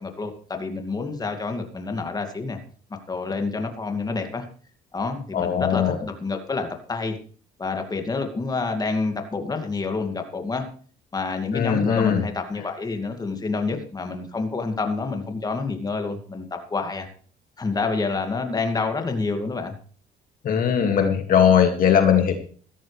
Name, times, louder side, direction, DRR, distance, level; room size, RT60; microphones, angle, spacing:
voice 1, 0.0-2.6 3.1-4.4 4.9-7.2 7.6-10.7 11.1-17.1 17.6-19.7, left 4 dB, 25° left, 5 dB, 2.4 m, -28 dB
voice 2, 5.3-6.0 11.5-12.2 20.4-22.3, left 8 dB, 55° left, 5 dB, 2.3 m, -19 dB
16.5 x 13.5 x 3.4 m, 0.43 s
cardioid pair, 110°, 17 cm